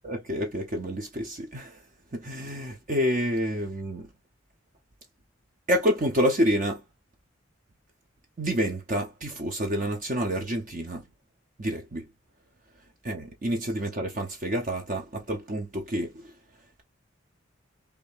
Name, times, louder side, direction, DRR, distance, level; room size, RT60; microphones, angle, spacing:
voice 1, 0.0-1.8 2.1-4.1 5.7-6.8 8.4-11.1 11.6-12.1 13.0-16.3, equal, 40° right, 0.7 m, -28 dB
3.4 x 2.7 x 3.2 m
head